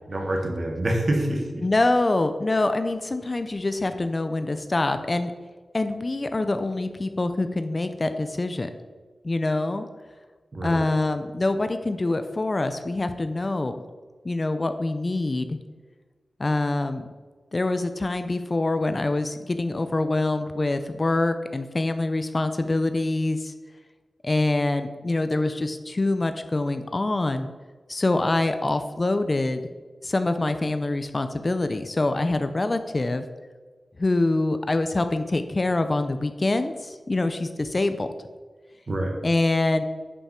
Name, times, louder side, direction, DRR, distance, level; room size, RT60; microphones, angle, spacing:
voice 1, 0.1-1.6 10.5-10.8 38.9-39.2, right 1 dB, 45° right, 2 dB, 1.7 m, -26 dB
voice 2, 1.6-5.3 5.7-8.7 9.2-9.9 10.6-13.8 14.2-15.6 16.4-17.0 17.5-23.5 24.2-27.5 27.9-29.6 30.0-33.3 34.0-38.1 39.2-39.8, left 2 dB, 35° left, 9 dB, 0.5 m, -25 dB
11.0 x 5.6 x 4.4 m, 1.4 s
wide cardioid pair, 95°, 0 cm